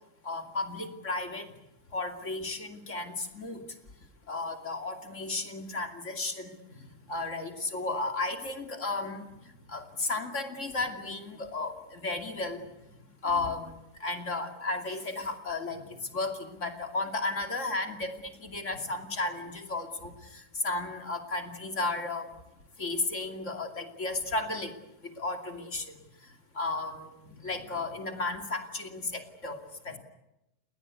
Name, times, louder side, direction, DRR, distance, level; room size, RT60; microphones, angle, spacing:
voice 1, 0.2-1.5 1.9-3.6 4.3-6.6 7.1-9.3 9.7-12.6 13.2-13.7 14.0-15.8 16.1-22.2 22.8-24.7 25.0-25.9 26.5-27.1 27.4-30.0, left 3 dB, 50° left, 5 dB, 3.0 m, -34 dB
voice 2, 6.7-7.1 9.5-9.8 12.9-13.7 15.7-16.2 18.7-18.9 25.9-26.1 27.2-27.9 29.9-30.0, left 2 dB, 55° right, 1 dB, 5.2 m, -53 dB
29.5 x 20.0 x 8.3 m, 0.90 s
omnidirectional pair, 1.7 m